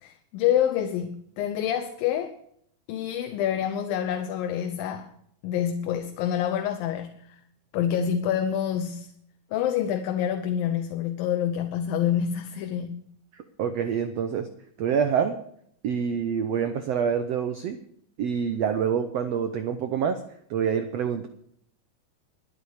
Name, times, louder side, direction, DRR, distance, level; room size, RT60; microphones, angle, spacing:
voice 1, 0.0-2.3 2.9-5.1 5.4-7.2 7.7-9.1 9.5-13.1, left 9 dB, 80° left, 2.6 m, -27 dB
voice 2, 13.6-14.5 14.8-15.4 15.8-17.8 18.2-20.2 20.5-21.3, right 7 dB, 80° right, 1.4 m, -26 dB
12.0 x 10.5 x 6.5 m
omnidirectional pair, 4.1 m